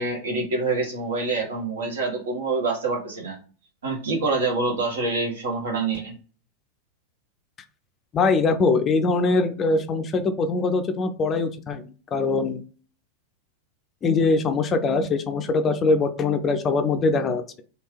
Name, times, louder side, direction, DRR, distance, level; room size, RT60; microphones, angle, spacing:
voice 1, 0.0-3.4 3.8-6.1, right 3 dB, 65° right, 0 dB, 1.2 m, -26 dB
voice 2, 8.1-12.6 14.0-17.4, left 3 dB, 25° left, 8 dB, 0.4 m, -22 dB
3.4 x 2.4 x 3.3 m, 0.39 s
figure-of-eight pair, 90°, 0 cm